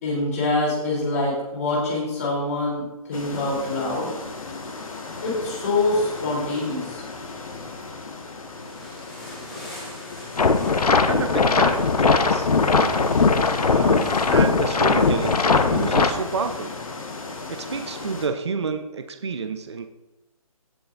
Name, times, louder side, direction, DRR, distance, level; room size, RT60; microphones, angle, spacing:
voice 1, 0.0-2.8 3.1-4.1 5.2-7.0, left 2 dB, 25° left, -5 dB, 3.4 m, -25 dB
sound 1, 3.1-18.3, left 3 dB, 65° left, 1.7 m, -36 dB
sound 2, 8.5-16.2, equal, ahead, 1.3 m, -44 dB
sound 3, 10.4-16.1, left 4 dB, 85° left, 1.0 m, -19 dB
voice 2, 11.1-13.1 13.7-16.8 17.2-19.9, right 5 dB, 45° right, 7 dB, 0.8 m, -30 dB
17.5 x 7.6 x 2.6 m, 1.0 s
hypercardioid pair, 175°, 19 cm